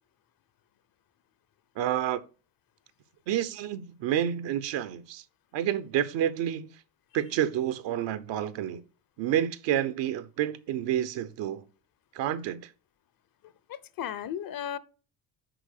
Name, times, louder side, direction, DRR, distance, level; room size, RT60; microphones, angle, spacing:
voice 1, 1.8-2.2 3.3-5.2 5.5-6.7 7.1-8.8 9.2-11.7 12.1-12.7, right 11 dB, 70° right, 0.9 m, -29 dB
voice 2, 13.7-14.8, left 9 dB, 50° left, 0.8 m, -35 dB
6.1 x 4.7 x 6.6 m
supercardioid pair, 75°, 46 cm